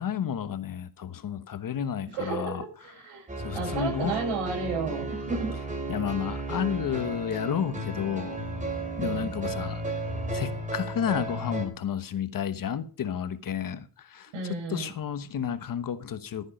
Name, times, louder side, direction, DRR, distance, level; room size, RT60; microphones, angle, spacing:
voice 1, 0.0-4.3 5.9-8.4 9.0-10.0 10.3-16.5, left 8 dB, 40° left, 1.1 m, -32 dB
voice 2, 2.1-3.3 3.5-5.6 9.0-9.3 14.3-14.9, right 4 dB, 85° right, 7.6 m, -32 dB
sound 1, 3.3-11.7, right 2 dB, 15° right, 3.1 m, -34 dB
13.0 x 9.4 x 5.1 m
cardioid pair, 130°, 50 cm